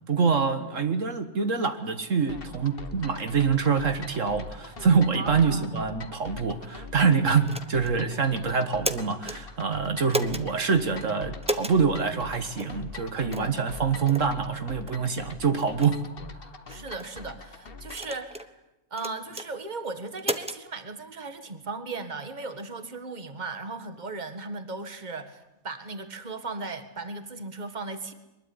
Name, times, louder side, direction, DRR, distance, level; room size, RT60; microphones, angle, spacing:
voice 1, 0.1-16.0, right 5 dB, 70° right, 8 dB, 1.9 m, -25 dB
sound 1, 2.3-18.1, left 4 dB, 45° left, 1.6 m, -43 dB
voice 2, 5.1-5.7 13.2-13.6 16.7-18.6 18.9-28.1, right 3 dB, 35° right, 8 dB, 1.9 m, -37 dB
sound 2, 7.5-8.0 8.6-9.4 10.1-10.5 11.4-11.8 12.6-12.7 13.3-13.5 14.1-14.3 14.9-15.0 15.6-15.9 16.7-17.1 17.9-18.5 19.0-19.5 20.2-20.6, right 1 dB, 5° right, 1.0 m, -32 dB
23.5 x 21.0 x 9.7 m, 0.95 s
omnidirectional pair, 1.4 m